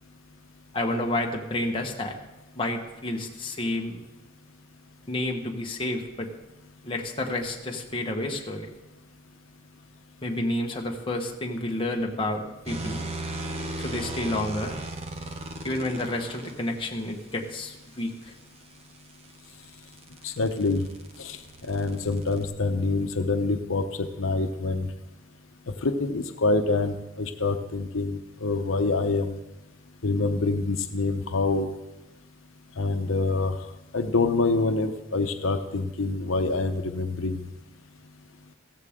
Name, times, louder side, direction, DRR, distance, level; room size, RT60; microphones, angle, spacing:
voice 1, 0.7-2.1 2.5-4.0 5.1-6.3 6.8-8.7 10.2-13.0 13.8-14.8 15.6-18.3, left 1 dB, 25° left, 1 dB, 1.3 m, -30 dB
sound 1, 12.7-16.5 18.8-22.5, right 2 dB, 30° right, 1.1 m, -37 dB
voice 2, 20.2-20.8 21.2-21.4 21.7-23.8 24.2-24.9 25.8-29.4 30.0-31.7 32.8-33.5 33.9-37.4, left 3 dB, 85° left, 7 dB, 0.8 m, -26 dB
15.0 x 14.5 x 3.7 m, 1.0 s
head